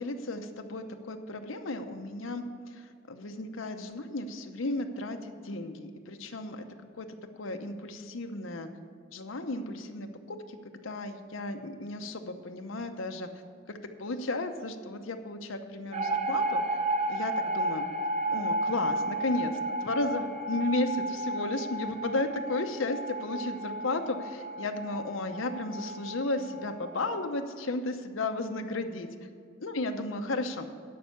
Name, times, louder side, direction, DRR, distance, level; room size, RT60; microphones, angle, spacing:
voice 1, 0.0-2.4 2.7-2.8 3.1-6.6 7.0-7.1 7.4-8.7 9.1-10.6 10.8-13.3 13.7-16.6 17.1-17.8 18.3-29.1 29.6-30.7, left 2 dB, 90° left, 6 dB, 0.9 m, -34 dB
sound 1, 15.9-27.1, right 1 dB, 35° right, 0.7 m, -33 dB
12.0 x 5.6 x 8.4 m, 2.2 s
head